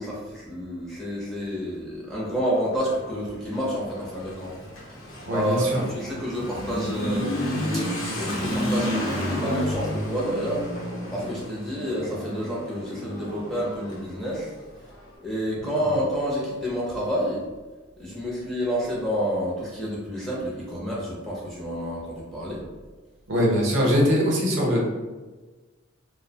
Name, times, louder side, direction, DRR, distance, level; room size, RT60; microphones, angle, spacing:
voice 1, 0.0-4.5 5.2-7.3 7.7-7.9 8.1-10.6 11.1-14.5 15.2-17.4 18.0-22.6, equal, ahead, -6 dB, 0.5 m, -29 dB
Motorcycle / Accelerating revving vroom, 2.7-15.0, equal, 80° left, 0.7 m, -31 dB
voice 2, 5.3-5.8 15.8-15.9 23.3-24.8, equal, 70° right, -2 dB, 0.7 m, -22 dB
2.6 x 2.0 x 2.7 m, 1.3 s
head